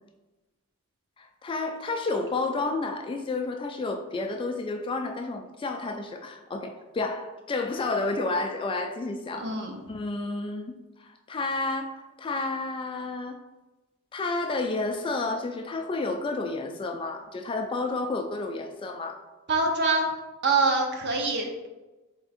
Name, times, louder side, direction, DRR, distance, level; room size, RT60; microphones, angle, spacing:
voice 1, 1.2-9.5 9.9-10.7 11.0-13.4 14.1-19.2, left 3 dB, 25° left, 4 dB, 0.3 m, -31 dB
voice 2, 9.4-9.7 19.5-20.1 20.4-21.5, right 3 dB, 50° right, 2 dB, 0.7 m, -24 dB
3.5 x 3.4 x 4.1 m, 1.1 s
head